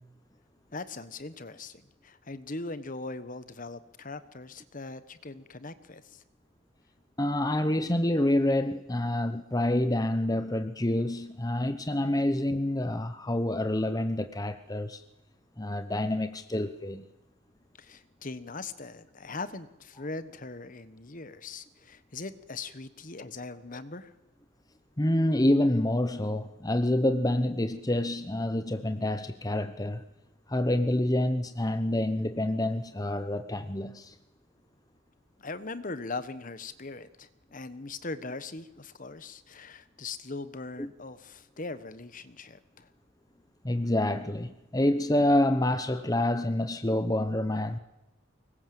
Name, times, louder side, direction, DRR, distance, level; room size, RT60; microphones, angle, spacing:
voice 1, 0.7-6.2 17.8-24.1 35.4-42.9, left 3 dB, 40° left, 1.2 m, -40 dB
voice 2, 7.2-15.0 15.6-17.0 25.0-30.0 30.5-34.1 40.8-40.9 43.6-47.8, left 1 dB, 15° left, 0.9 m, -27 dB
24.5 x 21.0 x 7.7 m
head